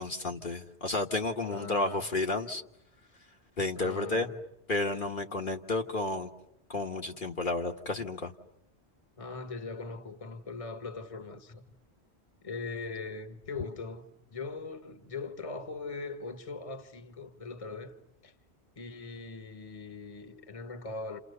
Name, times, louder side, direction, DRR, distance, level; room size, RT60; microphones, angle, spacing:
voice 1, 0.0-2.6 3.6-4.3 4.7-6.3 6.7-8.3, left 2 dB, 50° left, 1.6 m, -31 dB
voice 2, 1.5-2.1 3.8-4.4 9.2-11.6 12.4-14.0 14.3-17.9 18.2-18.3 18.8-21.2, left 4 dB, 30° left, 1.4 m, -40 dB
30.0 x 29.0 x 6.8 m
omnidirectional pair, 1.1 m